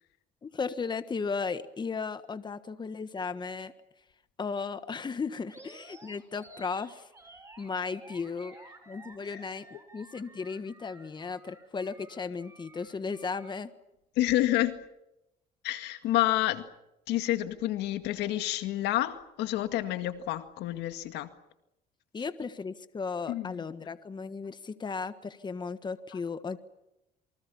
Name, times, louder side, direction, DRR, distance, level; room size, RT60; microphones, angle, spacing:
voice 1, 0.4-3.7 4.4-7.0 7.6-8.6 8.9-13.7 22.1-26.6, left 5 dB, 25° left, 12 dB, 1.5 m, -35 dB
Animal, 5.5-13.6, right 2 dB, 15° right, 6.7 m, -53 dB
voice 2, 14.2-14.8 15.6-16.7 17.1-21.3 23.3-23.6, left 14 dB, 85° left, 10 dB, 2.0 m, -29 dB
28.0 x 24.0 x 7.1 m, 0.89 s
cardioid pair, 110°, 17 cm